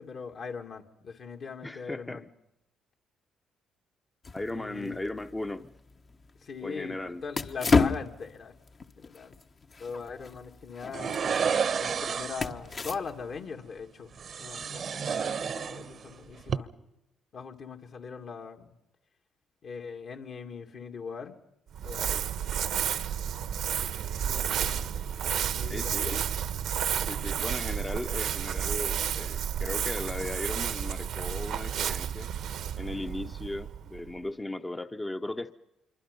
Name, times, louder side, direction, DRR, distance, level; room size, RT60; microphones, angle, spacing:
voice 1, 0.0-2.2 4.5-5.1 6.4-8.5 9.0-9.3 9.8-11.2 11.8-16.7 17.3-18.8 19.6-21.3 21.8-22.0 24.1-24.9 25.5-26.2, left 5 dB, 60° left, 2.5 m, -41 dB
voice 2, 1.6-2.2 4.3-5.7 6.6-7.2 25.7-26.2 27.1-32.3 32.7-35.5, left 2 dB, 15° left, 0.9 m, -37 dB
sound 1, 4.2-13.4, left 4 dB, 45° left, 1.2 m, -33 dB
sound 2, 10.9-12.6 14.2-16.1 16.4-16.6, right 6 dB, 55° right, 1.0 m, -30 dB
Crumpling crinkling, 21.7-34.2, right 9 dB, 75° right, 1.2 m, -31 dB
26.5 x 24.0 x 5.5 m
supercardioid pair, 65°, 0 cm